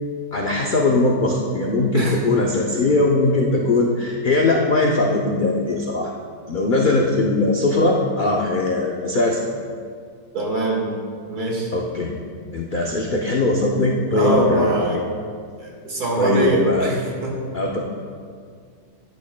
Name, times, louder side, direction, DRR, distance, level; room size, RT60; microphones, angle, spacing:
voice 1, 0.3-6.1 6.5-9.4 11.7-12.1 12.5-14.8 16.2-16.9 17.5-17.8, left 2 dB, 60° left, -1 dB, 0.5 m, -20 dB
voice 2, 10.3-10.9 11.3-11.7 14.1-15.0 15.6-17.3, right 1 dB, 70° right, -2 dB, 2.2 m, -22 dB
11.5 x 9.1 x 2.2 m, 2.1 s
omnidirectional pair, 1.7 m